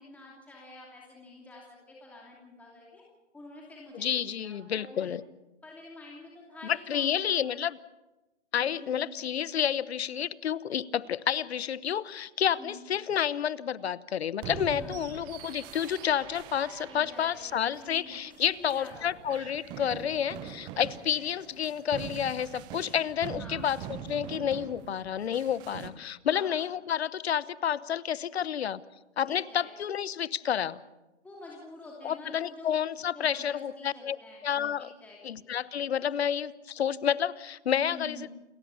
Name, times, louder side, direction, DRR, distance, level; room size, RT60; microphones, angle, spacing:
voice 1, 0.0-3.0 3.3-5.1 5.6-7.4 8.6-9.1 12.6-12.9 14.6-15.3 16.9-19.1 23.4-23.8 26.3-26.6 29.3-29.7 31.2-32.7 33.1-34.4 34.8-35.5 37.9-38.3, left 2 dB, 5° left, -3 dB, 2.7 m, -48 dB
voice 2, 3.9-5.2 6.6-7.8 8.5-28.8 29.2-30.8 32.0-34.2 34.4-34.9 35.2-38.3, left 9 dB, 60° left, 19 dB, 1.0 m, -30 dB
sound 1, 14.4-25.9, right 9 dB, 15° right, 0.7 m, -44 dB
28.5 x 14.5 x 7.1 m, 1.0 s
hypercardioid pair, 150°, 35 cm